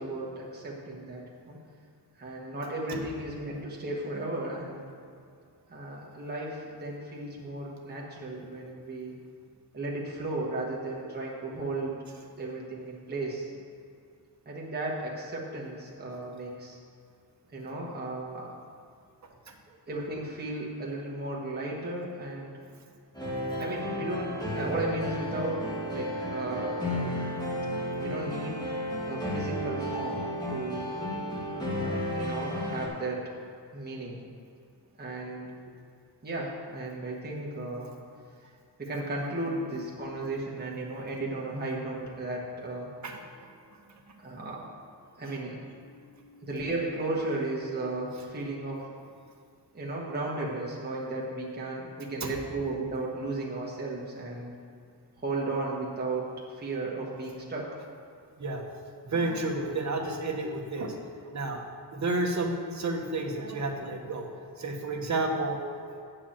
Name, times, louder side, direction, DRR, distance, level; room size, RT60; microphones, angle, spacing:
voice 1, 0.0-1.6 2.2-4.8 5.7-9.1 9.7-12.0 12.4-13.5 14.4-16.8 17.5-18.5 19.9-22.5 23.6-26.8 28.0-28.6 29.1-30.9 31.5-33.3 33.7-34.2 35.0-35.5 36.2-37.9 38.8-42.9 44.2-44.6 45.2-45.6 46.4-48.9 49.7-54.5 55.2-56.3 56.5-57.7, right 2 dB, 25° right, -4 dB, 1.3 m, -35 dB
voice 2, 19.2-19.5 43.0-43.8 45.8-46.3 52.2-52.3 58.4-58.6 59.0-61.0 61.3-64.3 64.6-66.0, right 2 dB, 45° right, 2 dB, 1.1 m, -32 dB
sound 1, 23.1-32.9, equal, 10° left, 1.6 m, -32 dB
8.7 x 4.9 x 7.4 m, 2.3 s
wide cardioid pair, 145°, 41 cm